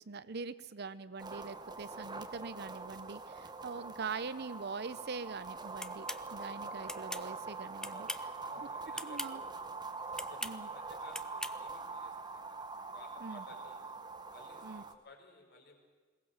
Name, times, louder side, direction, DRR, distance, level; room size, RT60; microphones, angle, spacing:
voice 1, 0.1-8.1 8.5-8.7 9.0-9.4 10.4-10.7 13.2-13.4 14.6-14.8, right 4 dB, 55° right, 15 dB, 0.7 m, -43 dB
sound 1, 1.2-14.9, right 4 dB, 20° right, 1.0 m, -44 dB
sound 2, 5.8-6.2 6.9-7.3 7.8-8.3 8.9-9.3 10.1-10.6 11.1-11.6, left 1 dB, 5° left, 0.6 m, -40 dB
voice 2, 7.9-9.6 10.2-13.9 14.3-15.8, left 2 dB, 55° left, 2 dB, 4.4 m, -57 dB
21.5 x 18.5 x 7.5 m, 1.5 s
head